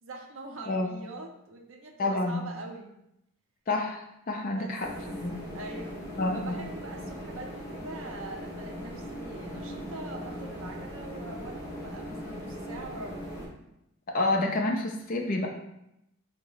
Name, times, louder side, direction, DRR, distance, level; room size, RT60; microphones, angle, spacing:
voice 1, 0.0-2.9 4.5-4.8 5.5-6.0 6.3-13.3, right 2 dB, 65° right, 2 dB, 0.5 m, -43 dB
voice 2, 2.0-2.4 3.7-4.0 4.3-4.9 5.2-5.3 6.2-6.6 14.1-15.5, left 2 dB, 40° left, 1 dB, 0.4 m, -28 dB
sound 1, 4.8-13.5, equal, 15° left, 0.9 m, -39 dB
3.9 x 2.0 x 3.9 m, 0.82 s
head